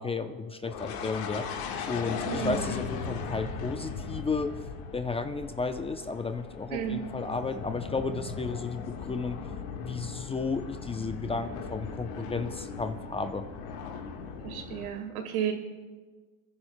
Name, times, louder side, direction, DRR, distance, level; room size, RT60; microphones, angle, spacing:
voice 1, 0.0-1.5 1.9-4.6 4.9-9.4 9.8-13.5, left 4 dB, 15° left, 9 dB, 0.5 m, -33 dB
sound 1, 0.6-14.9, left 5 dB, 55° left, 1.5 m, -38 dB
voice 2, 2.3-2.6 6.7-7.0 14.4-15.5, right 9 dB, 80° right, 5 dB, 1.8 m, -32 dB
27.5 x 10.5 x 2.2 m, 1.3 s
supercardioid pair, 100°, 43 cm